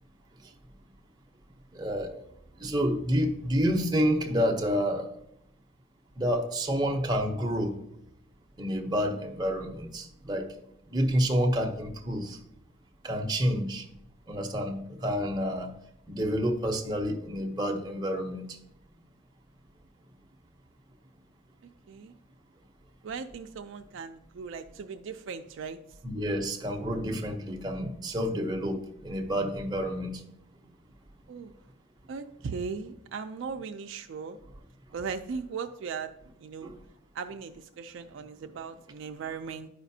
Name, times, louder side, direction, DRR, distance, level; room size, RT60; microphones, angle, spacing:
voice 1, 1.7-2.2 2.6-5.1 6.2-7.8 8.6-10.5 10.9-12.4 13.0-13.8 14.3-15.7 16.1-18.5 26.0-30.2 36.6-36.7, equal, 20° right, 2 dB, 0.6 m, -29 dB
voice 2, 23.0-25.8 31.3-31.5 32.1-34.4 34.9-36.1 36.4-36.7 37.1-39.7, right 5 dB, 60° right, 6 dB, 0.3 m, -38 dB
10.5 x 5.0 x 2.7 m, 0.77 s
head